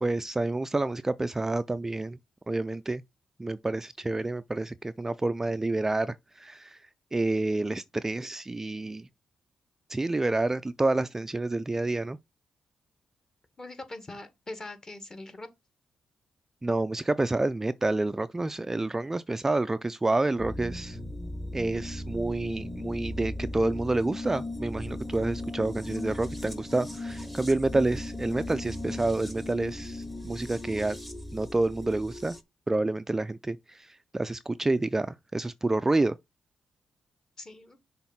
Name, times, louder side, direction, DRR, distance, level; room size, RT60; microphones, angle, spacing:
voice 1, 0.0-2.2 2.5-3.0 3.4-6.8 7.1-9.1 9.9-12.2 16.6-21.0 21.5-31.0 31.3-32.3 32.7-36.1, right 2 dB, 20° right, 0.4 m, -28 dB
voice 2, 13.6-15.5 37.4-37.8, left 2 dB, 25° left, 1.8 m, -42 dB
sound 1, 20.4-32.4, left 1 dB, ahead, 1.0 m, -37 dB
6.2 x 3.5 x 5.7 m
cardioid pair, 85°, 2 cm